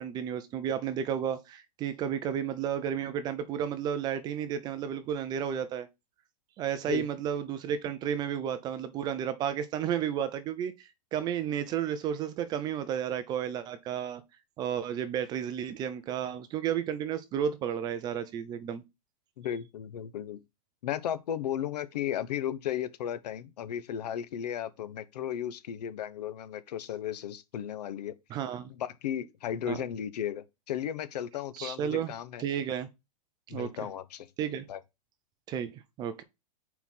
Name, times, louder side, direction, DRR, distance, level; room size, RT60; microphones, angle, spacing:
voice 1, 0.0-5.9 6.6-14.2 14.6-18.8 28.3-28.7 29.7-29.8 31.5-32.1 32.4-32.9 33.5-33.7 34.4-34.6 35.5-36.2, right 9 dB, 20° right, 0.5 m, -32 dB
voice 2, 19.4-20.4 20.8-28.1 28.7-32.4 33.5-34.3 34.7-34.8, left 10 dB, 80° left, 0.8 m, -35 dB
4.6 x 4.4 x 5.4 m
supercardioid pair, 160°, 21 cm